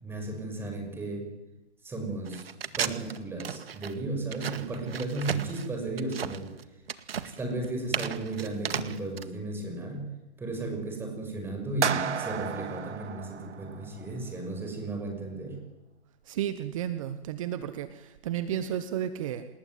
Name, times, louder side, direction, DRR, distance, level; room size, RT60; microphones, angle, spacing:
voice 1, 0.0-1.3 1.8-2.4 2.8-6.5 7.4-10.1 10.4-15.6, right 2 dB, 5° right, 3 dB, 6.3 m, -34 dB
sound 1, 2.2-9.2, right 8 dB, 60° right, 2.1 m, -35 dB
sound 2, 11.8-14.0, right 7 dB, 85° right, 1.1 m, -32 dB
voice 2, 16.2-19.5, right 10 dB, 30° right, 11 dB, 1.3 m, -32 dB
28.5 x 20.0 x 9.4 m, 1.0 s
hypercardioid pair, 155°, 34 cm